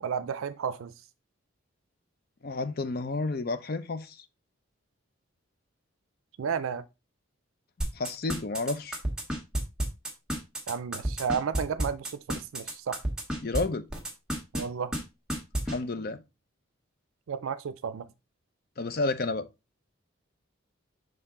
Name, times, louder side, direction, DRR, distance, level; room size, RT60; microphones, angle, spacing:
voice 1, 0.0-0.9 6.4-6.8 10.7-13.0 14.5-14.9 17.3-18.1, right 6 dB, 85° right, 0.4 m, -32 dB
voice 2, 2.4-4.2 7.9-9.0 13.4-13.9 15.7-16.2 18.8-19.5, left 3 dB, 45° left, 0.6 m, -31 dB
sound 1, 7.8-13.6 13.9-14.6 14.9-15.0 15.3-15.8, right 1 dB, 5° right, 1.3 m, -30 dB
6.1 x 4.6 x 3.7 m
head